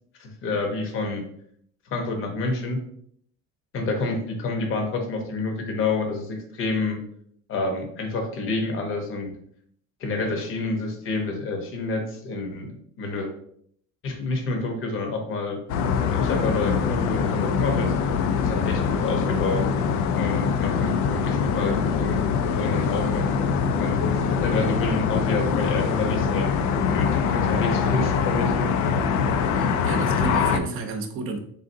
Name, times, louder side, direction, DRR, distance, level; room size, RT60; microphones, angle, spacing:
voice 1, 0.2-1.2 1.9-2.8 3.7-7.0 7.5-9.3 10.0-12.7 13.0-13.3 14.0-15.6 16.0-17.9 18.4-19.6 20.2-22.3 22.6-23.3 23.8-26.6 26.9-28.7, left 3 dB, 45° left, 3 dB, 0.8 m, -28 dB
sound 1, 15.7-30.6, left 6 dB, 70° left, 0.5 m, -23 dB
voice 2, 29.6-31.4, right 3 dB, 45° right, 4 dB, 0.7 m, -31 dB
4.0 x 3.6 x 2.6 m, 0.65 s
cardioid pair, 170°, 30 cm